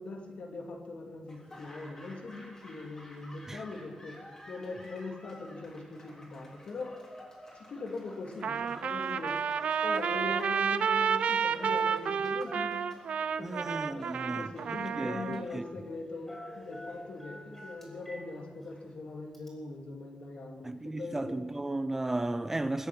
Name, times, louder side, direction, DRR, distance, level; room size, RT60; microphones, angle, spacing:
voice 1, 0.0-4.2 4.5-7.0 7.7-9.4 9.8-12.8 13.4-21.4, left 3 dB, 65° left, 2.7 m, -41 dB
Laughter / Applause, 1.2-19.3, left 1 dB, 25° left, 3.6 m, -53 dB
Trumpet, 8.4-15.4, right 7 dB, 70° right, 0.7 m, -30 dB
Telephone, 9.8-10.0 10.3-10.6 10.9-12.2 12.5-13.4 14.6-14.8 15.1-15.8 16.3-18.3 18.6-18.7 19.3-19.5, equal, 5° left, 4.7 m, -48 dB
voice 2, 13.4-15.6 20.6-22.9, right 2 dB, 15° right, 0.6 m, -35 dB
23.0 x 8.2 x 7.5 m
wide cardioid pair, 150°, 2 cm